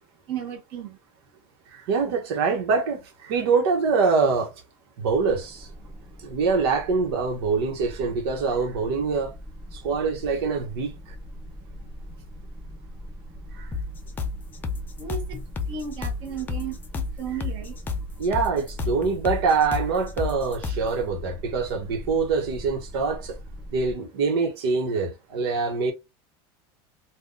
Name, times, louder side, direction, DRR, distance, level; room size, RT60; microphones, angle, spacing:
voice 1, 0.3-1.0 15.0-15.4 15.7-16.8 17.2-17.7, right 7 dB, 40° right, 0.8 m, -33 dB
voice 2, 1.7-4.5 5.0-5.7 6.2-9.3 9.7-10.9 13.5-13.7 18.2-23.4 23.7-25.9, right 4 dB, 90° right, 1.0 m, -24 dB
sound 1, 5.1-23.9, equal, ahead, 0.7 m, -41 dB
sound 2, 13.7-20.9, left 4 dB, 15° left, 0.4 m, -31 dB
2.7 x 2.2 x 3.6 m
supercardioid pair, 165°, 13 cm